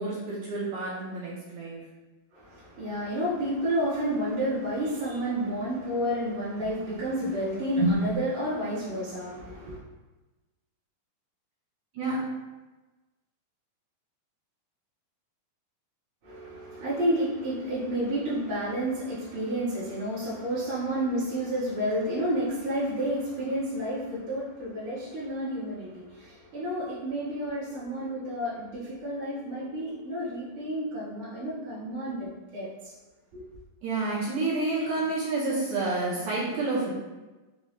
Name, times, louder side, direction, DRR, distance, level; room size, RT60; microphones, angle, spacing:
voice 1, 0.0-1.8 7.8-7.9 11.9-12.2 33.8-36.9, right 3 dB, 70° right, -7 dB, 1.9 m, -29 dB
voice 2, 2.3-9.8 16.2-32.9 33.3-33.4, equal, 55° right, -11 dB, 1.6 m, -30 dB
5.6 x 2.3 x 3.0 m, 1.2 s
omnidirectional pair, 3.9 m